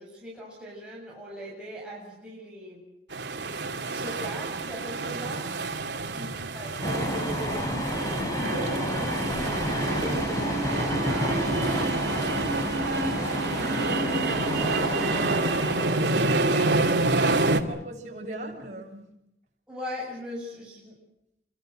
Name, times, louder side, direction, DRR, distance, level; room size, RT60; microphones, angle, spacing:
voice 1, 0.0-2.8 3.8-5.6 6.1-13.2 19.7-20.9, equal, 5° right, -5 dB, 7.7 m, -40 dB
sound 1, 3.1-17.6, right 3 dB, 85° right, 2.5 m, -28 dB
voice 2, 5.8-6.2 13.5-14.8 15.3-19.0, right 1 dB, 40° right, 1 dB, 7.6 m, -40 dB
sound 2, 6.8-16.1, equal, 20° left, 4.3 m, -30 dB
28.0 x 24.5 x 6.6 m, 0.83 s
head